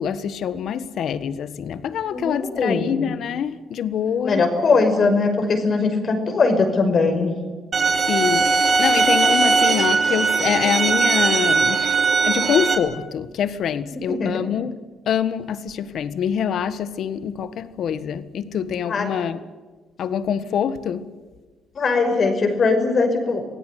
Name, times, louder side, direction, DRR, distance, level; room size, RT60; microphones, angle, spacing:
voice 1, 0.0-4.4 8.1-14.7 15.1-19.4 20.0-21.1, left 8 dB, 70° left, 1.5 m, -25 dB
voice 2, 2.1-2.9 4.2-7.3 14.1-14.4 18.9-19.1 21.8-23.4, left 4 dB, 50° left, 5.7 m, -20 dB
sound 1, 7.7-12.8, right 4 dB, 40° right, 3.2 m, -19 dB
26.0 x 17.5 x 9.5 m
cardioid pair, 90°, 0 cm